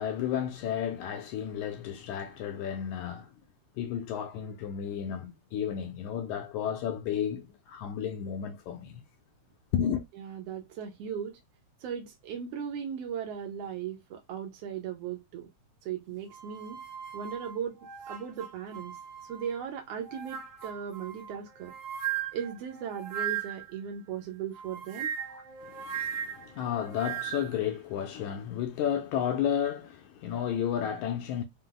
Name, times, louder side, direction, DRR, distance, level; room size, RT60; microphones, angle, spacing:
voice 1, 0.0-3.3 3.8-9.0 9.7-10.1 25.3-31.4, left 9 dB, 80° left, 1.8 m, -32 dB
voice 2, 10.2-11.4 11.8-15.5 15.8-16.8 17.1-19.0 19.3-21.7 22.3-25.1, right 8 dB, 75° right, 1.5 m, -37 dB
sound 1, 16.3-19.6 20.0-23.8 24.5-27.6, right 10 dB, 55° right, 1.1 m, -38 dB
5.2 x 2.1 x 3.8 m
omnidirectional pair, 3.7 m